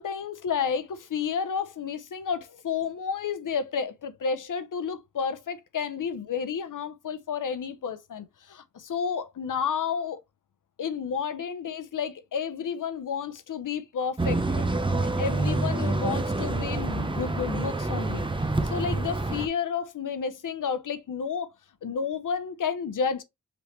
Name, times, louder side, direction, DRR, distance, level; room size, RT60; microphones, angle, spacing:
voice 1, 0.0-10.2 10.8-14.7 15.2-21.5 21.8-23.2, left 6 dB, 85° left, 0.7 m, -31 dB
sound 1, 14.2-19.5, right 2 dB, 15° right, 0.6 m, -27 dB
5.1 x 3.3 x 3.1 m
wide cardioid pair, 110°, 31 cm